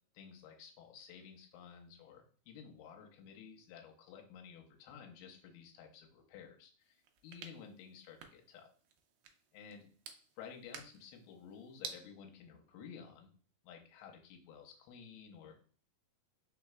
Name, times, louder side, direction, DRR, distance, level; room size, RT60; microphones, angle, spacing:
voice 1, 0.1-8.7 9.5-9.9 10.4-13.3 13.6-15.5, left 7 dB, 85° left, 2 dB, 2.6 m, -53 dB
sound 1, 6.8-12.0, right 7 dB, 90° right, 1.8 m, -52 dB
5.0 x 4.0 x 2.2 m, 0.44 s
omnidirectional pair, 4.5 m